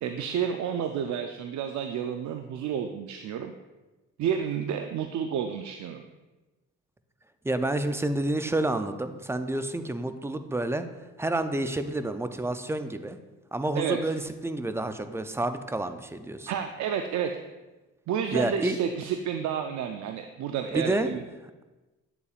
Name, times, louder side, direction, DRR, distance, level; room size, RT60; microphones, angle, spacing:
voice 1, 0.0-3.5 4.2-6.0 13.8-14.1 16.5-17.4 18.1-21.2, right 8 dB, 70° right, 6 dB, 0.5 m, -30 dB
voice 2, 7.4-10.9 11.2-13.2 13.5-16.5 18.3-18.8 20.7-21.1, right 2 dB, 10° right, 9 dB, 0.4 m, -29 dB
8.4 x 7.0 x 2.4 m, 1.1 s
cardioid pair, 90°, 30 cm